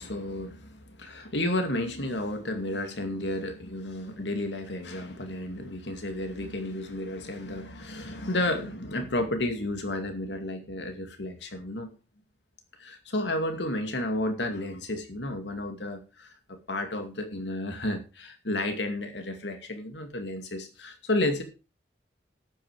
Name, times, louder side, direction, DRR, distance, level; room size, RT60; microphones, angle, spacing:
voice 1, 0.0-11.9 12.8-21.4, left 1 dB, 90° left, 7 dB, 2.4 m, -32 dB
12.0 x 8.9 x 5.0 m, 0.32 s
head